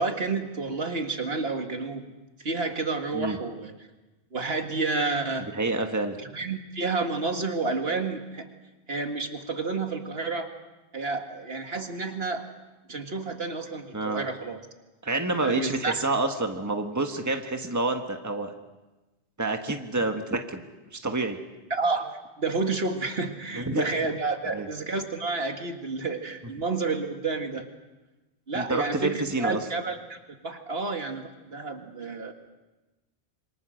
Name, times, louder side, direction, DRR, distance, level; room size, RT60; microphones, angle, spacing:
voice 1, 0.0-2.1 2.4-3.7 4.3-5.5 6.2-8.5 8.9-10.5 10.9-12.5 12.9-14.6 15.4-15.9 21.7-22.1 22.4-27.7 28.5-30.2 30.4-32.3, right 3 dB, 65° right, 5 dB, 2.2 m, -30 dB
voice 2, 5.5-6.2 13.9-14.2 15.0-18.5 19.4-20.6 21.0-21.4 23.6-23.8 24.5-24.7 28.5-29.6, right 2 dB, 15° right, 5 dB, 1.5 m, -28 dB
27.0 x 24.5 x 6.5 m, 1.1 s
omnidirectional pair, 1.1 m